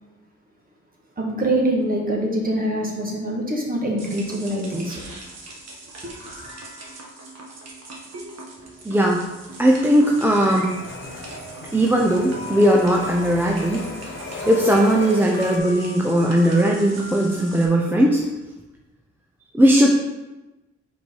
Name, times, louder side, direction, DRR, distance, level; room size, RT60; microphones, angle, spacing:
voice 1, 1.2-5.0 6.0-6.1, right 1 dB, 30° right, -2 dB, 1.7 m, -24 dB
sound 1, 4.0-17.7, right 1 dB, 60° right, 1.5 m, -39 dB
voice 2, 8.8-9.2 9.6-10.7 11.7-13.8 14.5-18.3 19.6-19.9, equal, 5° right, -2 dB, 0.6 m, -18 dB
sound 2, 10.1-15.6, left 3 dB, 40° left, 0.9 m, -36 dB
5.3 x 4.8 x 4.6 m, 1.0 s
cardioid pair, 105°, 30 cm